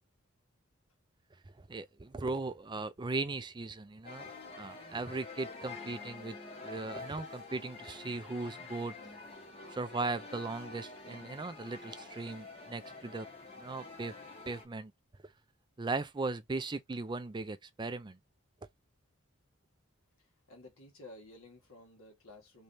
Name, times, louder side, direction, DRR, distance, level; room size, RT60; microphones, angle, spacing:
voice 1, 1.6-4.3 4.6-6.4 6.6-8.9 9.7-13.3 13.6-14.1 14.5-14.9 15.2-15.3 15.8-18.2, right 3 dB, 20° right, 0.4 m, -38 dB
sound 1, 4.0-14.6, left 3 dB, 30° left, 1.5 m, -47 dB
voice 2, 20.2-22.6, left 2 dB, 80° left, 1.7 m, -54 dB
3.4 x 3.1 x 2.7 m
head